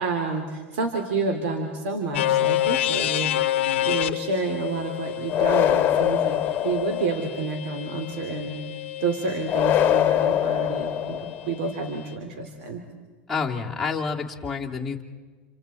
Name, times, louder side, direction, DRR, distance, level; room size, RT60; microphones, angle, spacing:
voice 1, 0.0-3.5 3.9-6.4 6.6-8.6 9.0-12.8, right 4 dB, 75° right, 4 dB, 3.4 m, -29 dB
sound 1, 2.1-10.0, left 14 dB, 90° left, 0.8 m, -28 dB
sound 2, 5.3-7.4 9.5-11.5, left 11 dB, 35° left, 1.5 m, -23 dB
voice 2, 13.3-15.0, left 5 dB, 5° left, -5 dB, 2.9 m, -28 dB
29.0 x 28.0 x 4.5 m, 1.4 s
supercardioid pair, 130°, 6 cm